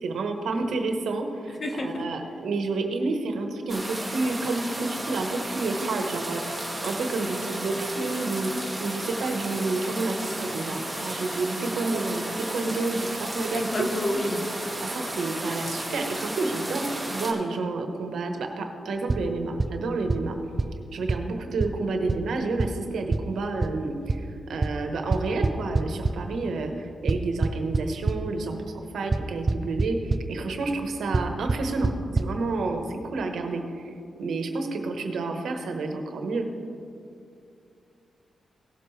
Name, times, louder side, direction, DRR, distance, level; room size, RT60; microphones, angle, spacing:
voice 1, 0.0-13.9 14.1-14.2 14.8-20.4 20.9-28.6 28.9-33.6 34.2-36.5, right 3 dB, 80° right, 4 dB, 1.2 m, -30 dB
voice 2, 1.6-2.1 13.5-14.4, left 1 dB, 40° left, 3 dB, 1.4 m, -29 dB
sound 1, 3.7-17.3, right 1 dB, 5° right, 2.3 m, -33 dB
sound 2, 19.1-19.2 19.6-19.7 20.1-20.2 20.6-20.7 21.1-21.2 21.6-21.7 22.1-22.2 22.6-22.7 23.1-23.2 23.6-23.7 24.1-24.2 24.6-24.7 25.1-26.1 27.1-28.2 29.1-29.2 29.5-29.9 30.1-30.2 31.1-31.2 31.5-31.6 31.8-31.9 32.2-32.3, right 3 dB, 35° right, 0.5 m, -22 dB
17.5 x 7.7 x 3.3 m, 2.5 s
cardioid pair, 65°, 0 cm